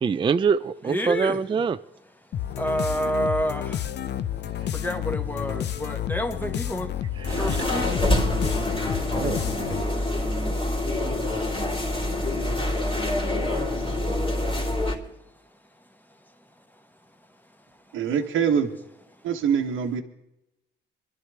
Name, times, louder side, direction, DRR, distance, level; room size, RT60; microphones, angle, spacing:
voice 1, 0.0-1.8 7.2-7.6 9.1-9.4, right 6 dB, 25° right, 0.4 m, -24 dB
voice 2, 0.8-1.4 2.5-3.9 4.7-7.0 7.3-8.1, equal, 10° left, 1.5 m, -29 dB
sound 1, 2.3-10.0, left 10 dB, 60° left, 0.7 m, -30 dB
sound 2, 7.3-15.0, left 1 dB, 25° left, 2.9 m, -26 dB
voice 3, 17.9-18.8 19.2-20.0, right 7 dB, 80° right, 1.1 m, -24 dB
24.5 x 11.5 x 3.3 m
cardioid pair, 90°, 20 cm